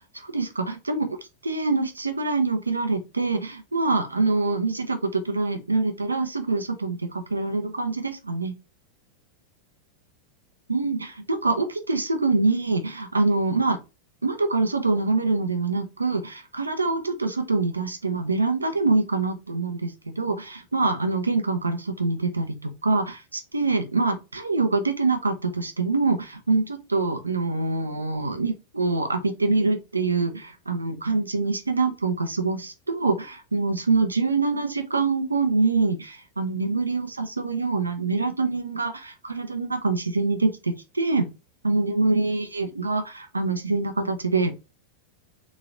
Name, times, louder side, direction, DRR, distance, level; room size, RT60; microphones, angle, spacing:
voice 1, 0.1-1.1 1.4-8.5 10.7-13.8 14.2-41.3 41.6-44.6, right 3 dB, 80° right, 6 dB, 0.7 m, -25 dB
3.8 x 3.0 x 2.5 m, 0.27 s
figure-of-eight pair, 90°, 0 cm